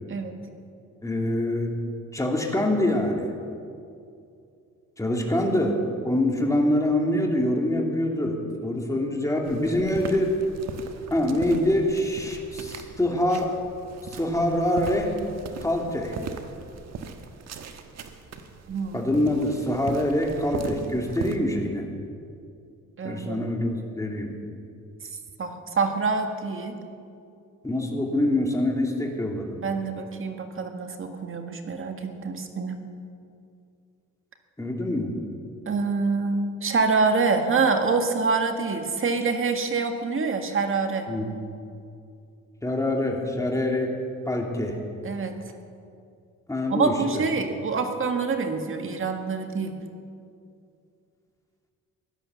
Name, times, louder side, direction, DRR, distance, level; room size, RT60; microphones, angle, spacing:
voice 1, 0.1-0.4 18.7-19.0 23.0-23.5 25.4-26.8 29.6-32.8 35.7-41.1 45.0-45.4 46.7-49.8, right 4 dB, 45° right, 6 dB, 1.8 m, -26 dB
voice 2, 1.0-1.7 2.1-3.3 5.0-10.3 11.1-13.5 14.1-15.1 15.6-16.2 18.9-21.9 23.0-24.3 27.6-29.6 34.6-35.1 41.1-41.4 42.6-44.0 44.3-44.8 46.5-47.2, left 1 dB, 10° left, 1 dB, 2.7 m, -25 dB
sound 1, 9.4-21.4, right 5 dB, 60° right, 1.4 m, -40 dB
16.5 x 11.0 x 7.1 m, 2.5 s
cardioid pair, 90°, 30 cm